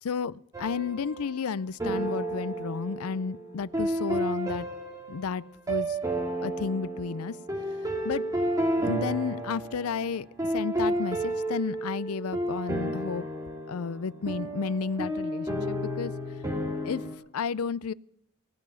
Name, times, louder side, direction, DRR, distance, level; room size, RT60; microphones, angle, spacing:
voice 1, 0.0-4.7 5.1-6.0 6.4-7.4 8.0-8.2 8.7-10.3 10.5-13.3 13.7-16.1 16.8-17.0 17.3-17.9, left 6 dB, 80° left, 20 dB, 0.5 m, -32 dB
sound 1, 0.5-1.4 1.8-17.1, right 1 dB, 15° right, 2.6 m, -31 dB
18.0 x 6.9 x 9.1 m, 0.74 s
head